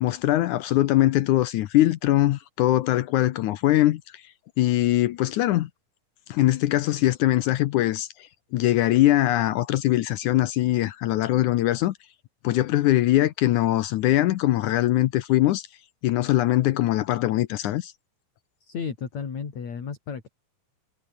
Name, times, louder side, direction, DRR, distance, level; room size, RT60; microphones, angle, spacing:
voice 1, 0.0-4.2 4.6-5.7 6.3-8.1 8.5-11.9 12.4-15.7 16.0-17.9, left 15 dB, 75° left, 1.9 m, -22 dB
voice 2, 18.6-20.3, left 6 dB, 50° left, 4.5 m, -33 dB
omnidirectional pair, 4.2 m